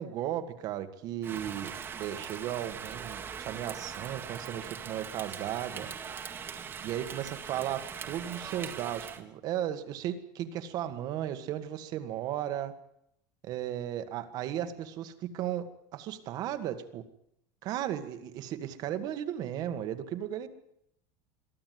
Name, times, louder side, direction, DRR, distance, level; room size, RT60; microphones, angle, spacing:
voice 1, 0.0-1.7 2.0-5.9 6.8-12.7 13.4-15.6 15.9-17.0 17.6-20.5, right 11 dB, 40° right, 9 dB, 1.8 m, -35 dB
Rain, 1.2-9.2, right 7 dB, 20° right, 1.9 m, -41 dB
23.0 x 14.5 x 9.5 m, 0.75 s
cardioid pair, 170°, 10 cm